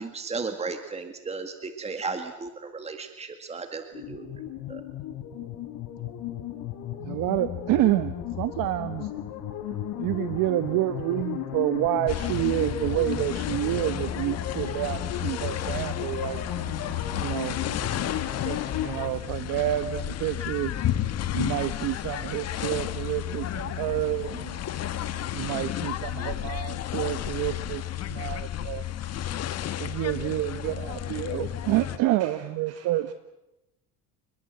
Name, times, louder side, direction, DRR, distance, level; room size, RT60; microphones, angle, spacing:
voice 1, 0.0-4.3 4.7-4.8, right 4 dB, 15° right, 7 dB, 2.1 m, -35 dB
sound 1, 3.9-19.1, left 11 dB, 65° left, 4.5 m, -34 dB
voice 2, 7.0-9.1 10.0-16.4 17.2-17.6 18.4-20.7 21.3-24.6 25.3-27.8 28.1-28.8 29.8-33.1, right 15 dB, 60° right, 12 dB, 1.2 m, -28 dB
sound 2, 12.1-32.0, left 10 dB, 45° left, 1.8 m, -32 dB
voice 3, 27.8-30.1 31.9-33.1, right 6 dB, 40° right, 9 dB, 5.4 m, -56 dB
30.0 x 21.5 x 7.8 m, 0.94 s
cardioid pair, 125°, 36 cm